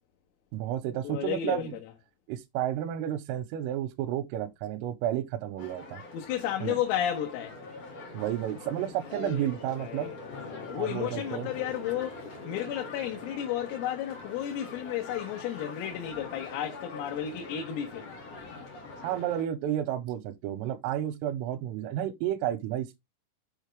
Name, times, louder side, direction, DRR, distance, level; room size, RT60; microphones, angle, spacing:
voice 1, 0.5-1.8 2.3-6.0 6.6-6.8 8.1-10.1 10.8-11.5 19.0-23.0, right 11 dB, 90° right, 3.4 m, -31 dB
voice 2, 1.1-1.7 6.1-7.6 9.2-18.2, left 11 dB, 85° left, 3.8 m, -33 dB
sound 1, 5.6-19.4, left 2 dB, 40° left, 2.7 m, -44 dB
6.9 x 6.5 x 3.3 m
omnidirectional pair, 5.9 m